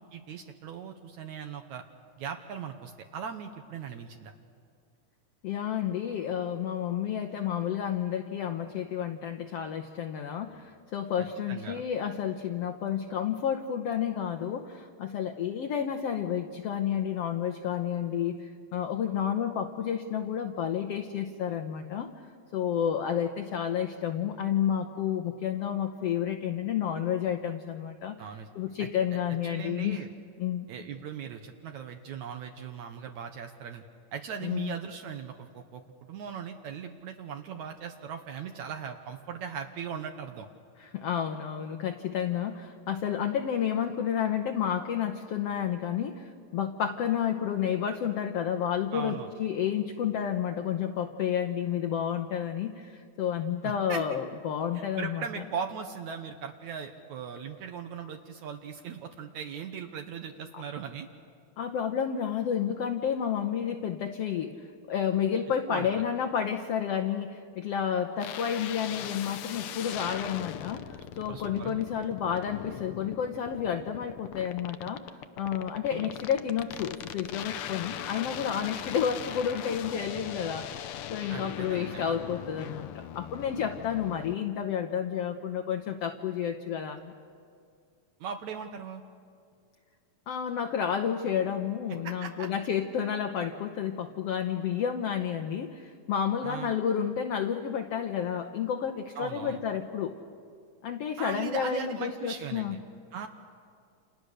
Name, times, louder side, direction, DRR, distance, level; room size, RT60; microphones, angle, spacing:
voice 1, 0.0-1.8 2.2-4.3 11.5-11.8 28.2-28.5 28.8-28.9 29.5-30.1 30.7-33.8 34.1-40.5 48.9-49.3 53.6-54.0 54.7-61.1 65.7-66.0 71.3-71.8 75.9-76.1 81.3-82.2 88.2-89.0 92.0-92.5 96.4-96.7 99.2-99.6 101.2-102.8 103.1-103.3, right 7 dB, 70° right, 5 dB, 2.3 m, -39 dB
voice 2, 5.4-22.1 22.5-28.2 28.6-30.0 30.4-30.7 34.4-34.8 40.8-55.4 60.5-60.6 61.6-75.1 75.4-80.8 81.1-87.1 90.3-100.1 100.8-102.8, left 8 dB, 65° left, 4 dB, 1.7 m, -31 dB
sound 1, 68.2-84.4, left 10 dB, 85° left, 1.2 m, -40 dB
29.5 x 28.0 x 6.6 m, 2.2 s
omnidirectional pair, 3.6 m